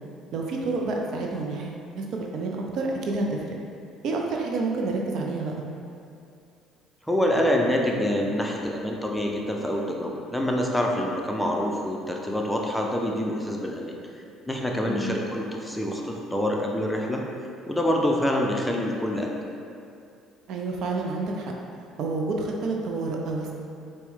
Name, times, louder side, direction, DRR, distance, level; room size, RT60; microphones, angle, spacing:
voice 1, 0.3-3.5 4.0-5.6 14.8-15.2 20.5-21.5 22.0-23.5, right 3 dB, 60° right, 0 dB, 0.4 m, -29 dB
voice 2, 7.1-17.2 17.7-19.3, left 1 dB, 5° left, 0 dB, 0.5 m, -26 dB
4.3 x 2.1 x 3.4 m, 2.5 s
hypercardioid pair, 60°, 0 cm